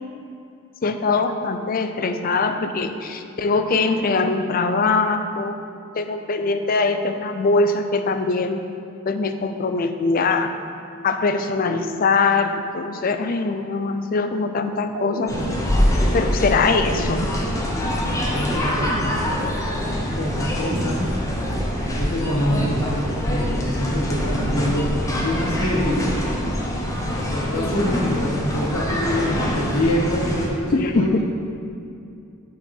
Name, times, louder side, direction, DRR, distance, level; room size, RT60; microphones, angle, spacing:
voice 1, 0.8-5.6 5.9-8.6 9.1-10.5 11.0-15.3 16.1-17.3 30.7-31.2, left 3 dB, 40° left, 8 dB, 0.4 m, -22 dB
sound 1, 14.9-16.2 16.9-18.0 18.8-19.9 20.7-21.7 22.6-23.5 24.4-25.3, right 2 dB, 60° right, 0.5 m, -35 dB
sound 2, 15.3-30.5, equal, 15° left, 0.8 m, -24 dB
voice 2, 17.9-19.0 19.8-22.8 23.2-26.1 27.2-31.1, left 1 dB, 75° left, -2 dB, 1.6 m, -26 dB
8.6 x 5.2 x 4.3 m, 2.5 s
head